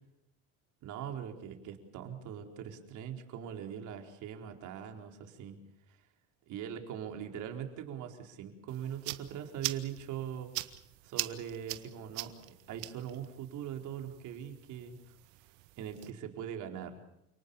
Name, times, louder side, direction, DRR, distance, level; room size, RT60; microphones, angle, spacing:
voice 1, 0.8-5.6 5.9-6.0 6.5-10.5 11.0-15.0 15.8-17.0, right 9 dB, 55° right, 4 dB, 4.5 m, -41 dB
sound 1, 8.7-16.1, right 20 dB, 75° right, 1.8 m, -43 dB
29.5 x 19.0 x 7.2 m, 0.83 s
supercardioid pair, 125°, 36 cm